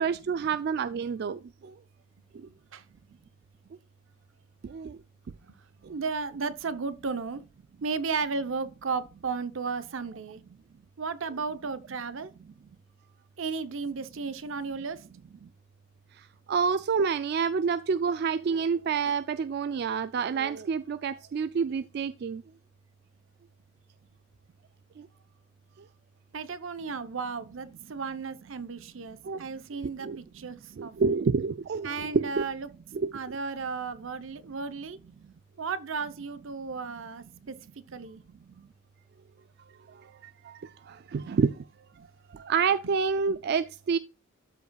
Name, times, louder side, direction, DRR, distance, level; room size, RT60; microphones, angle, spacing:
voice 1, 0.0-1.8 2.3-2.5 4.6-5.0 5.8-5.9 15.4-15.5 16.1-22.4 25.0-25.1 25.8-25.9 29.2-29.4 30.0-30.2 30.8-32.4 32.9-33.1 39.9-41.6 42.0-44.0, right 5 dB, 50° right, 0.3 m, -29 dB
voice 2, 5.9-7.4 7.8-10.4 11.0-12.3 13.4-15.0 26.3-31.1 31.8-32.7 33.1-35.0 35.6-37.5 37.9-38.2, right 4 dB, 75° right, 0.7 m, -34 dB
13.0 x 5.2 x 2.3 m
head